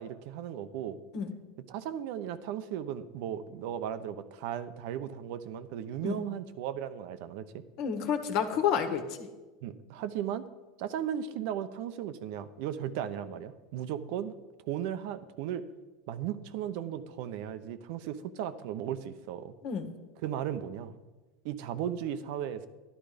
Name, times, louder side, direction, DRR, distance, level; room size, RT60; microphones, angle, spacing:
voice 1, 0.0-1.0 1.7-7.6 9.6-10.4 10.8-14.3 14.7-15.6 16.1-19.5 20.2-21.0 21.4-22.7, right 10 dB, 65° right, 12 dB, 0.8 m, -36 dB
voice 2, 7.8-9.3 19.6-19.9, left 7 dB, 55° left, 7 dB, 1.5 m, -30 dB
11.5 x 11.0 x 5.1 m, 1.2 s
supercardioid pair, 135°, 0 cm